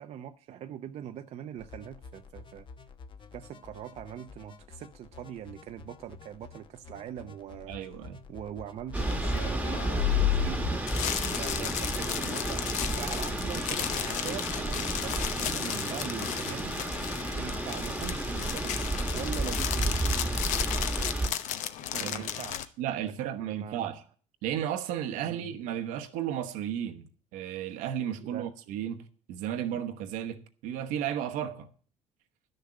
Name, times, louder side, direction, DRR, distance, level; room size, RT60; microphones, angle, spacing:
voice 1, 0.0-2.7 3.3-7.7 8.3-11.1 11.4-16.7 17.4-20.0 21.9-22.7 23.4-23.9 25.2-25.5 28.2-28.5, right 10 dB, 55° right, 0.6 m, -42 dB
sound 1, 1.6-13.6, left 5 dB, 40° left, 0.9 m, -49 dB
voice 2, 7.7-8.2 22.0-22.2 22.8-24.0 24.4-27.1 27.3-31.7, right 10 dB, 80° right, 1.1 m, -34 dB
sound 2, 8.9-21.3, right 2 dB, 10° right, 1.2 m, -32 dB
sound 3, 9.0-22.7, left 11 dB, 70° left, 0.8 m, -33 dB
11.5 x 6.6 x 7.7 m
supercardioid pair, 95°, 13 cm